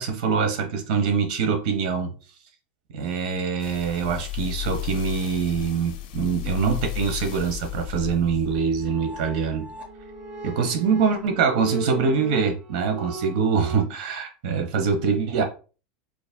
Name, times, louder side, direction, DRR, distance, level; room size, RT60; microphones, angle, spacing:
voice 1, 0.0-2.1 2.9-9.7 10.4-15.4, right 5 dB, 60° right, 1.0 m, -24 dB
sound 1, 3.6-10.1 10.6-10.7, left 15 dB, 65° left, 0.7 m, -34 dB
sound 2, 8.5-13.8, right 3 dB, 25° right, 0.6 m, -37 dB
4.7 x 2.7 x 2.2 m
supercardioid pair, 170°, 5 cm